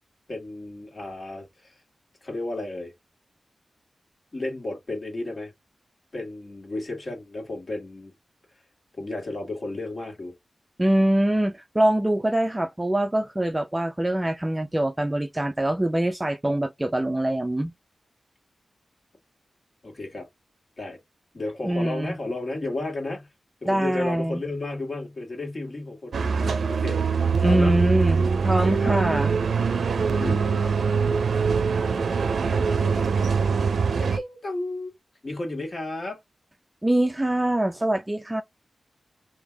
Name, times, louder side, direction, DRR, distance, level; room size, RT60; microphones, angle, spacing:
voice 1, 0.3-1.8 2.2-2.9 4.3-5.5 6.1-8.1 8.5-8.6 8.9-10.3 19.8-20.3 20.8-21.0 21.3-23.3 23.6-27.8 28.6-29.0 30.2-30.5 32.7-33.3 34.1-34.9 35.2-36.2, left 2 dB, 45° left, 1.8 m, -33 dB
voice 2, 10.8-17.7 21.6-22.1 23.7-24.4 27.4-29.3 36.8-38.4, right 1 dB, 15° right, 0.4 m, -24 dB
sound 1, 26.1-34.2, right 5 dB, 85° right, 0.4 m, -23 dB
3.6 x 2.7 x 3.4 m
wide cardioid pair, 100°, 0 cm